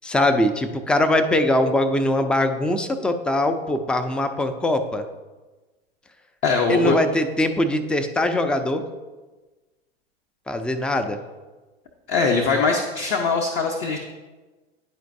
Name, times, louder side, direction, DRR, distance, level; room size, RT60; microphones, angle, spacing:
voice 1, 0.0-5.0 6.7-8.8 10.5-11.2, left 1 dB, 5° left, 8 dB, 0.4 m, -22 dB
voice 2, 6.4-7.0 12.1-14.0, left 4 dB, 40° left, 2 dB, 0.8 m, -21 dB
10.5 x 4.4 x 2.6 m, 1.2 s
hypercardioid pair, 95°, 31 cm